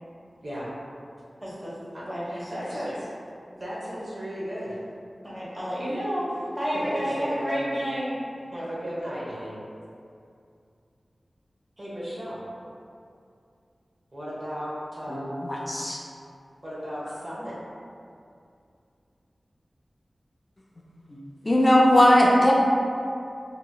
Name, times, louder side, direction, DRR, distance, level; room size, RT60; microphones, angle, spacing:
voice 1, 0.4-0.7 1.9-3.1 3.6-4.8 6.7-7.7 8.5-9.6 11.8-12.4 14.1-15.4 16.6-17.6, equal, 45° right, -8 dB, 0.9 m, -35 dB
voice 2, 1.4-3.0 5.2-8.2, equal, 25° right, -8 dB, 1.1 m, -31 dB
voice 3, 15.1-16.0 21.1-21.2 21.4-22.5, left 1 dB, 40° left, -3 dB, 0.4 m, -19 dB
2.9 x 2.8 x 2.2 m, 2.5 s
cardioid pair, 40°, 0 cm